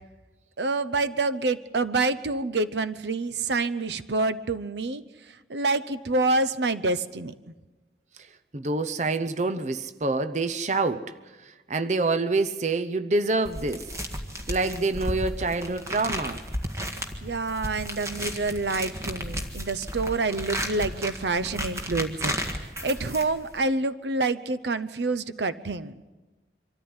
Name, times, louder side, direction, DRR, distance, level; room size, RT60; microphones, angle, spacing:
voice 1, 0.6-5.0 5.5-7.4 17.2-25.9, right 3 dB, 75° right, 0.8 m, -27 dB
voice 2, 8.5-11.2 11.4-13.9 14.5-16.4, right 3 dB, 40° right, 0.7 m, -26 dB
sound 1, 13.5-23.6, equal, 15° right, 1.7 m, -34 dB
25.0 x 14.0 x 9.7 m
head